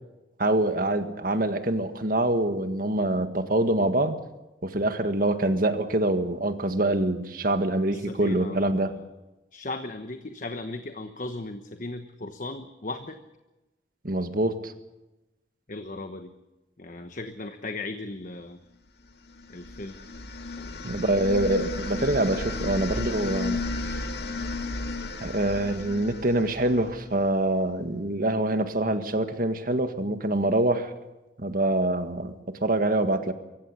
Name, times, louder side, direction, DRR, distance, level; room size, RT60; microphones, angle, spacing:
voice 1, 0.4-4.2 4.6-8.9 14.0-14.7 20.8-24.0 25.2-30.9 31.4-33.3, right 1 dB, 50° right, 8 dB, 1.8 m, -25 dB
voice 2, 7.9-8.9 9.5-13.2 15.7-16.3 16.8-18.6 19.5-20.0 20.5-21.0, left 2 dB, 45° left, 7 dB, 1.2 m, -37 dB
sound 1, 19.3-27.3, left 3 dB, 65° left, 2.3 m, -34 dB
24.5 x 15.5 x 8.3 m, 1.0 s
head